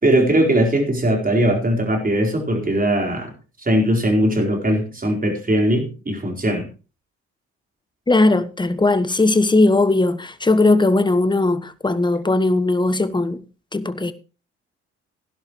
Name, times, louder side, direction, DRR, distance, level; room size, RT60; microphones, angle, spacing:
voice 1, 0.0-3.3 3.6-6.7, right 1 dB, 25° right, 4.3 m, -19 dB
voice 2, 8.1-13.4 13.7-14.1, left 2 dB, 15° left, 1.2 m, -18 dB
16.5 x 11.5 x 3.1 m
hypercardioid pair, 50°, 32 cm